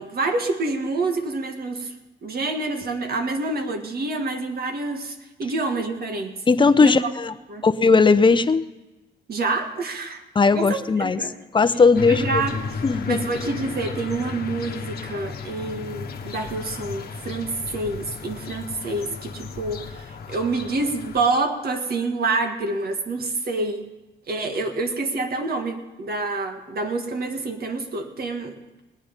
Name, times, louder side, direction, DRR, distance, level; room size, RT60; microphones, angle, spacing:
voice 1, 0.0-1.9 2.2-6.3 6.8-7.1 7.5-7.7 9.3-10.2 10.5-11.4 12.1-12.6 13.0-23.9 24.3-28.8, right 3 dB, 50° right, 5 dB, 1.8 m, -27 dB
voice 2, 6.5-7.3 7.6-8.7 10.3-11.2 11.5-12.4 12.8-13.2, left 4 dB, 25° left, 12 dB, 0.7 m, -17 dB
sound 1, 11.9-21.3, left 5 dB, 50° left, 1.4 m, -34 dB
19.5 x 9.3 x 5.3 m, 1.1 s
cardioid pair, 90°, 20 cm